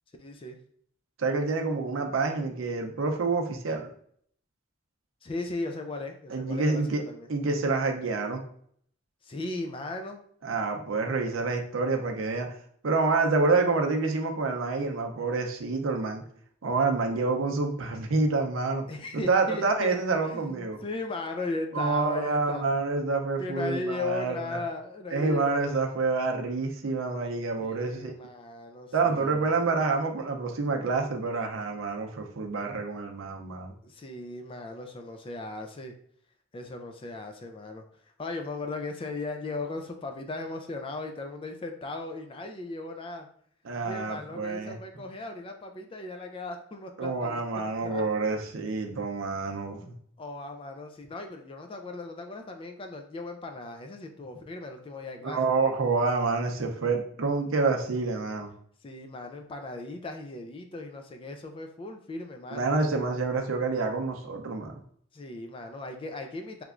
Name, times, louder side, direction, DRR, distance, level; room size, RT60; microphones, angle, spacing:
voice 1, 0.2-0.6 5.2-7.3 9.2-10.2 18.9-20.0 20.2-22.6 23.4-25.8 27.6-29.5 33.8-35.9 36.5-37.8 38.2-43.3 43.8-48.0 49.8-49.9 50.2-55.4 58.8-62.7 65.1-66.6, left 2 dB, 25° left, 4 dB, 0.3 m, -37 dB
voice 2, 1.2-3.9 6.3-7.0 7.3-8.4 10.4-12.5 12.8-16.2 16.6-18.8 19.1-20.8 21.7-24.6 25.1-28.1 28.9-33.7 43.6-44.8 47.0-49.9 55.2-58.5 62.5-64.7, right 3 dB, 75° right, 3 dB, 0.6 m, -27 dB
3.3 x 3.0 x 2.4 m, 0.62 s
head